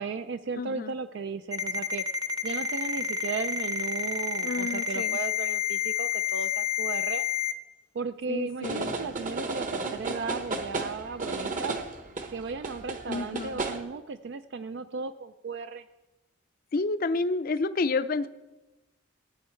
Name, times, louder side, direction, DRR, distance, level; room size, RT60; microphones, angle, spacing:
voice 1, 0.0-2.0 2.4-7.2 7.9-11.8 12.3-15.9, right 5 dB, 60° right, 10 dB, 0.4 m, -35 dB
voice 2, 0.6-1.0 4.4-5.2 8.3-9.0 13.1-13.6 16.7-18.3, left 3 dB, 45° left, 13 dB, 0.5 m, -30 dB
Ringtone, 1.5-7.5, left 7 dB, 20° right, 0.7 m, -29 dB
sound 1, 8.6-13.8, right 3 dB, 40° right, 1.0 m, -34 dB
18.0 x 8.3 x 4.4 m, 1.1 s
head